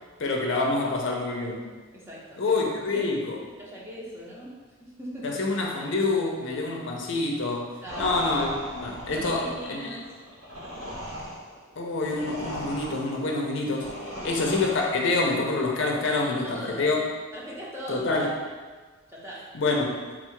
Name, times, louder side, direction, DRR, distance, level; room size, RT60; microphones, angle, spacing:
voice 1, 0.2-1.7 2.4-3.4 5.2-7.7 8.0-10.0 11.8-13.9 14.2-17.1 17.9-18.3 19.5-20.0, left 3 dB, 60° left, 0 dB, 0.5 m, -27 dB
voice 2, 1.9-2.5 2.9-3.1 3.6-4.5 4.8-5.4 7.8-8.2 9.1-10.1 13.9-14.4 16.4-16.9 17.3-18.3 19.1-19.4, equal, 10° right, -6 dB, 0.7 m, -39 dB
sound 1, 7.9-15.3, equal, 85° right, 1.0 m, -38 dB
3.8 x 2.4 x 4.5 m, 1.4 s
head